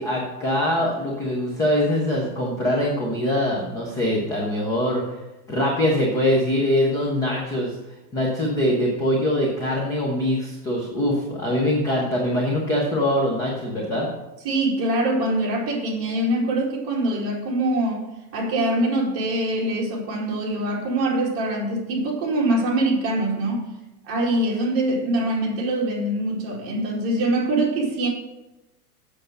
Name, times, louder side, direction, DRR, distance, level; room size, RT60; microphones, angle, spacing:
voice 1, 0.0-5.0 5.5-7.8 8.1-14.1, left 1 dB, 10° left, -3 dB, 0.4 m, -23 dB
voice 2, 14.4-18.1 18.3-23.7 24.1-28.1, right 1 dB, 30° right, -3 dB, 2.5 m, -23 dB
7.9 x 6.5 x 6.3 m, 0.98 s
supercardioid pair, 160°, 47 cm